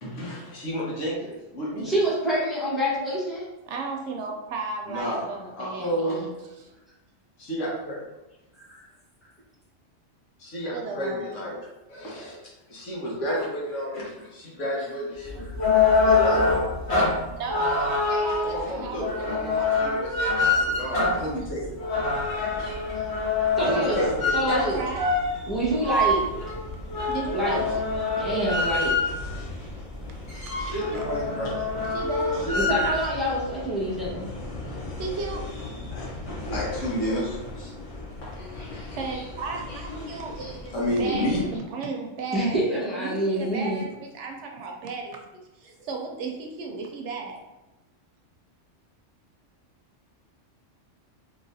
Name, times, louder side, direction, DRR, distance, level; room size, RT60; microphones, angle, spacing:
voice 1, 0.0-1.9 4.9-6.2 7.4-8.1 10.4-11.6 11.9-15.7 16.0-16.6 18.4-21.8 23.6-24.4 24.7-24.9 29.2-29.3 30.5-31.7 32.4-32.8 35.9-36.2 36.5-37.7 38.2-38.6 40.7-41.4, equal, 80° left, -5 dB, 1.5 m, -31 dB
voice 2, 1.8-3.5 5.8-6.3 8.6-8.8 15.7-16.1 22.9-23.1 23.6-24.8 25.5-26.3 27.3-27.7 28.1-29.2 30.3-30.4 32.5-34.3 42.3-43.9, equal, ahead, -8 dB, 1.2 m, -27 dB
voice 3, 3.7-6.3 6.6-6.7 10.7-11.3 17.3-19.4 24.5-25.3 27.1-28.0 31.9-32.5 35.0-35.5 38.9-45.2 45.5-47.4, right 4 dB, 70° right, 2 dB, 0.9 m, -35 dB
sound 1, 15.3-29.3 29.8-29.9 30.1-33.0, left 3 dB, 60° left, 1.5 m, -25 dB
sound 2, 21.9-41.6, left 2 dB, 40° left, 0.5 m, -39 dB
3.9 x 3.0 x 2.6 m, 0.99 s
omnidirectional pair, 1.3 m